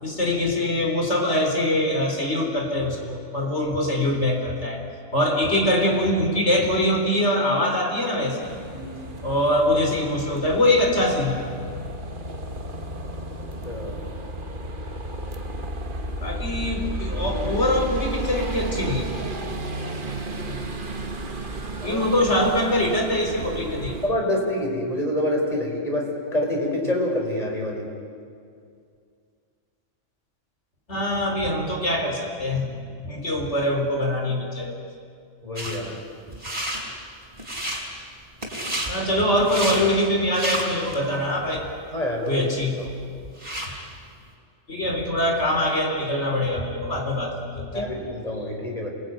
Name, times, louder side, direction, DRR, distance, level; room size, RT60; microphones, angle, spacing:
voice 1, 0.0-4.8 5.1-8.5 9.2-11.5 16.2-19.1 21.8-24.0 30.9-32.7 33.0-34.8 38.9-41.7 42.3-42.8 44.7-47.9, left 1 dB, 65° left, 3 dB, 4.1 m, -23 dB
sound 1, 8.4-24.1, right 1 dB, 45° right, 1.7 m, -33 dB
voice 2, 8.7-9.0 13.6-14.0 21.8-22.1 24.0-27.9 35.4-36.0 41.9-42.8 47.7-48.9, left 1 dB, 30° left, 0 dB, 4.7 m, -27 dB
sound 2, 35.6-35.8 36.3-36.8 37.3-37.8 38.4-38.9 39.4-39.8 40.2-41.0 41.5-41.6 42.3-42.4 42.6-43.7, right 1 dB, 25° right, 4.5 m, -30 dB
27.0 x 20.0 x 9.4 m, 2.3 s
omnidirectional pair, 1.2 m